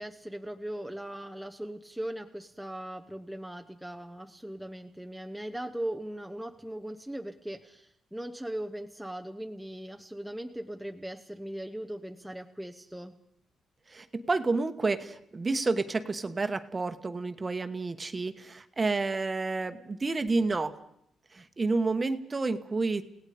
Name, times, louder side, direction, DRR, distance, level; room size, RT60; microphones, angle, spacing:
voice 1, 0.0-13.2, right 1 dB, ahead, 3 dB, 0.9 m, -39 dB
voice 2, 13.9-20.8 21.3-23.0, right 3 dB, 25° right, 10 dB, 1.2 m, -30 dB
29.5 x 17.5 x 5.0 m, 0.74 s
cardioid pair, 125°, 0 cm